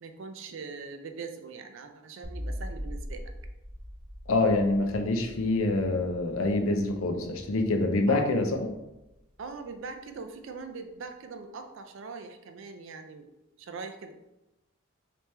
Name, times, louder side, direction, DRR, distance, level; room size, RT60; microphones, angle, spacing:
voice 1, 0.0-3.3 8.1-8.4 9.4-13.3 13.6-14.1, right 4 dB, 65° right, 6 dB, 0.4 m, -41 dB
sound 1, 2.2-9.4, equal, 10° left, 1.2 m, -42 dB
voice 2, 4.3-8.5, left 2 dB, 75° left, 4 dB, 0.6 m, -26 dB
3.3 x 3.0 x 3.2 m, 0.95 s
head